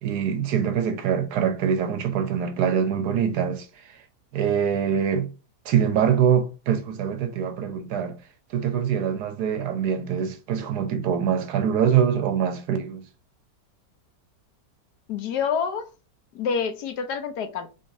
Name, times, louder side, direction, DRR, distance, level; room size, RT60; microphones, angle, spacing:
voice 1, 0.0-4.0 4.3-5.3 5.7-8.2 8.5-13.0, right 8 dB, 70° right, 1.1 m, -24 dB
voice 2, 15.1-15.9 16.3-17.7, left 6 dB, 75° left, 1.2 m, -27 dB
3.7 x 3.5 x 2.6 m
omnidirectional pair, 1.9 m